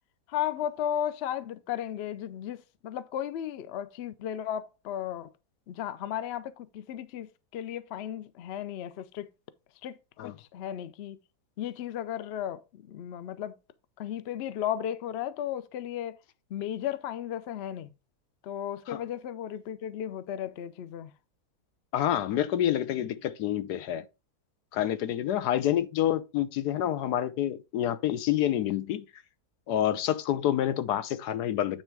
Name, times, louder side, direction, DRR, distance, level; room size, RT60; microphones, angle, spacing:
voice 1, 0.3-5.3 5.7-9.3 9.8-11.2 11.6-13.5 14.0-16.2 16.5-17.9 18.4-21.1, left 10 dB, 65° left, 0.6 m, -35 dB
voice 2, 21.9-24.0 24.7-29.0 29.7-31.8, left 11 dB, 85° left, 1.3 m, -28 dB
8.9 x 3.4 x 4.6 m
omnidirectional pair, 1.7 m